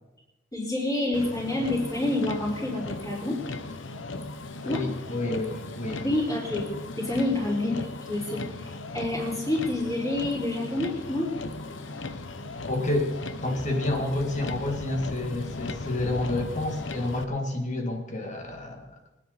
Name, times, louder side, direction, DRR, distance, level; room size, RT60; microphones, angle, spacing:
voice 1, 0.5-3.4 4.6-4.8 5.9-6.7 7.0-11.3, left 1 dB, 20° left, -10 dB, 4.6 m, -28 dB
Motor vehicle (road), 1.1-17.2, left 2 dB, 85° left, 1.0 m, -37 dB
voice 2, 4.6-6.1 12.7-13.1 13.4-18.9, left 2 dB, 40° left, 2 dB, 2.4 m, -29 dB
25.0 x 10.0 x 4.2 m, 1.0 s
head